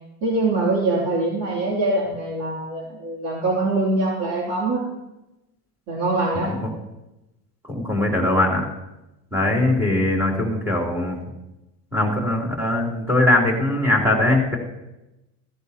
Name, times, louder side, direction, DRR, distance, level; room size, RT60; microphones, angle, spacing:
voice 1, 0.2-4.8 5.9-6.5, right 2 dB, 65° right, -3 dB, 2.9 m, -23 dB
voice 2, 7.7-8.7 9.3-11.2 11.9-14.6, left 1 dB, 5° right, -1 dB, 3.0 m, -21 dB
14.5 x 14.0 x 2.8 m, 0.97 s
cardioid pair, 145°, 38 cm